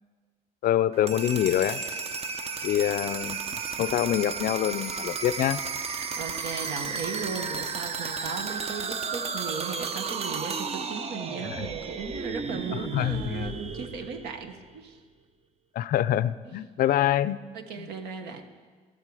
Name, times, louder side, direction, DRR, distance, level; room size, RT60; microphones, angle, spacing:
voice 1, 0.6-1.8 2.6-5.6 11.5-11.6 12.9-13.5 15.7-17.4 17.8-17.9, left 12 dB, 60° left, 16 dB, 0.5 m, -26 dB
sound 1, 0.9-14.8, right 5 dB, 35° right, 0.7 m, -33 dB
voice 2, 5.8-15.0 16.4-16.5 17.5-18.5, right 5 dB, 80° right, 7 dB, 1.2 m, -37 dB
14.0 x 12.0 x 4.9 m, 1.5 s
cardioid pair, 110°, 17 cm